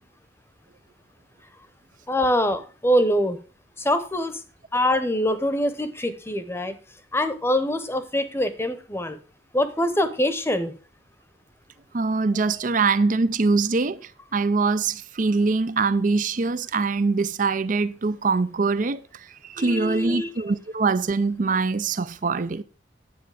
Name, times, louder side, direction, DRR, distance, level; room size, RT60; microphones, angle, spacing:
voice 1, 2.1-3.4 3.8-4.4 4.7-6.8 7.1-9.2 9.5-10.7 19.6-20.3, equal, 15° left, 0.9 m, -24 dB
voice 2, 11.9-14.0 14.3-19.0 19.5-22.6, right 4 dB, 45° right, 0.5 m, -23 dB
10.0 x 8.0 x 4.9 m
head